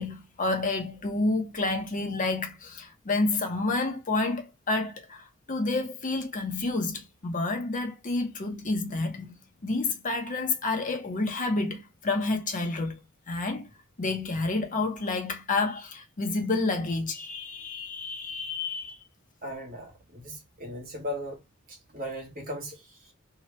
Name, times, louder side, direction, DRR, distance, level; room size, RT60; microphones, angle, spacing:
voice 1, 0.0-9.4 9.6-13.0 13.3-13.7 14.0-19.0, left 3 dB, 40° left, 0.8 m, -29 dB
voice 2, 19.4-21.4 21.7-23.1, equal, 45° right, 1.1 m, -38 dB
2.9 x 2.3 x 3.0 m
head